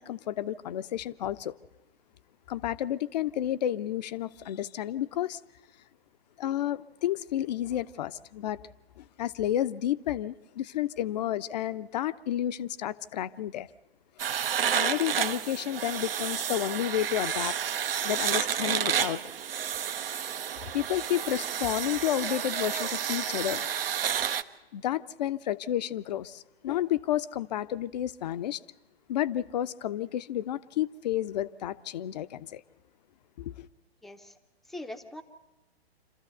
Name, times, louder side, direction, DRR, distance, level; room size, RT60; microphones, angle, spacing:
voice 1, 0.0-1.5 2.5-5.4 6.4-8.6 9.0-13.7 14.7-17.5 18.0-19.2 20.7-23.7 24.7-28.6 29.1-32.6 33.4-33.7, left 12 dB, 40° left, 0.7 m, -31 dB
sound 1, 14.2-24.4, right 8 dB, 65° right, 0.9 m, -30 dB
voice 2, 34.0-34.4 34.7-35.2, left 1 dB, ahead, 0.7 m, -41 dB
27.0 x 13.5 x 8.0 m
figure-of-eight pair, 125°, 31 cm